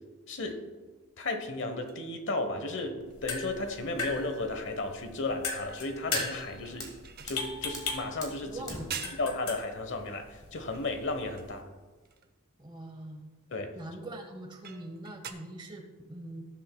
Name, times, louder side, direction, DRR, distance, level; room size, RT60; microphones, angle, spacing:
voice 1, 0.3-0.6 1.2-6.9 7.2-8.6 9.2-11.6 13.5-13.7, left 2 dB, 55° left, 7 dB, 1.1 m, -34 dB
sound 1, 1.9-2.1 2.4-2.5 2.8-3.1 5.7-7.9 8.5-8.6 8.9-9.3 10.4-11.6 12.0-12.3 14.6-15.3, right 6 dB, 45° right, 0.7 m, -44 dB
sound 2, 3.0-11.6, left 4 dB, 75° left, 1.5 m, -39 dB
Fire, 6.2-12.1, left 1 dB, 15° left, 1.7 m, -48 dB
voice 2, 8.4-9.2 12.6-13.3 13.7-16.4, right 1 dB, 20° right, 5 dB, 1.0 m, -43 dB
18.5 x 7.4 x 2.3 m, 1.3 s
head